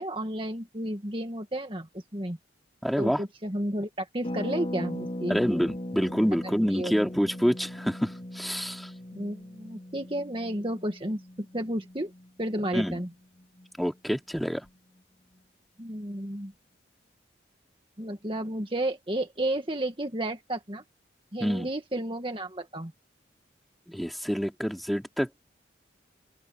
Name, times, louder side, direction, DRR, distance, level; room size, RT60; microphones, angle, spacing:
voice 1, 0.0-2.4 3.0-5.4 6.7-6.9 9.1-11.2 11.5-12.1 12.4-13.1 15.8-16.5 18.0-20.8 21.3-22.9, right 1 dB, 30° right, 1.9 m, -32 dB
voice 2, 2.8-3.2 5.3-8.9 12.7-13.0 13.8-14.6 21.4-21.7 23.9-25.3, equal, ahead, 2.7 m, -27 dB
Harp, 4.2-13.9 14.1-14.2 14.4-14.7, left 1 dB, 30° left, 4.3 m, -39 dB
head